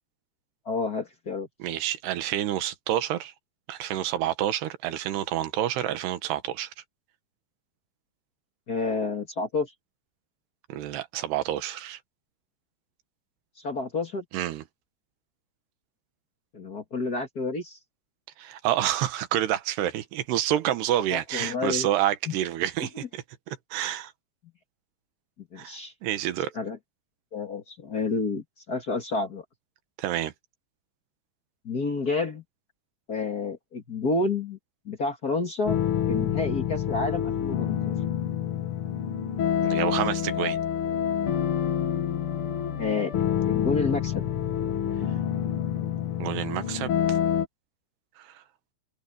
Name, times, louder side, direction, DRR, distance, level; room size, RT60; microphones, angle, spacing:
voice 1, 0.6-1.5 8.7-9.7 13.6-14.2 16.5-17.8 21.1-21.9 22.3-22.4 25.5-25.9 26.5-26.8 27.3-29.4 31.6-32.4 33.1-34.6 34.8-35.8 36.1-37.9 42.8-43.1 43.4-44.3, left 3 dB, 40° left, 1.4 m, -29 dB
voice 2, 1.6-3.3 3.7-6.7 10.7-12.0 14.3-14.6 18.4-24.1 25.6-25.7 26.0-26.5 30.0-30.3 39.6-40.6 46.2-47.2 48.2-48.4, right 12 dB, 90° right, 3.4 m, -28 dB
sound 1, 35.6-47.5, left 9 dB, 75° left, 1.2 m, -27 dB
omnidirectional pair, 4.6 m